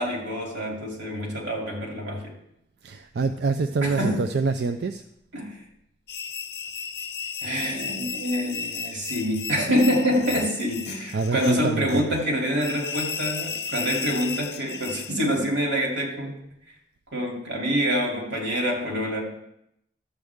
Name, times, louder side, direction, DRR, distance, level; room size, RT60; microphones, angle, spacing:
voice 1, 0.0-2.3 3.8-4.2 5.3-5.6 7.4-16.4 17.1-19.2, equal, 90° right, -1 dB, 3.0 m, -26 dB
voice 2, 2.8-5.0 11.1-12.2, right 4 dB, 65° right, 8 dB, 0.4 m, -26 dB
sound 1, 6.1-15.2, left 6 dB, 60° left, 0.5 m, -34 dB
12.5 x 7.7 x 3.6 m, 0.78 s
head